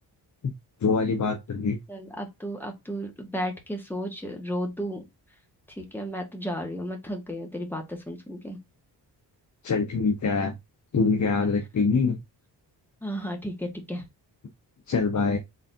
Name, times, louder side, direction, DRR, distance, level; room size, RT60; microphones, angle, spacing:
voice 1, 0.8-1.8 9.6-10.5 10.9-12.2 14.9-15.4, left 4 dB, 40° left, 1.0 m, -24 dB
voice 2, 1.9-5.0 5.8-8.6 13.0-14.0, equal, 5° left, 1.7 m, -33 dB
4.1 x 3.6 x 2.7 m
cardioid pair, 85°, 43 cm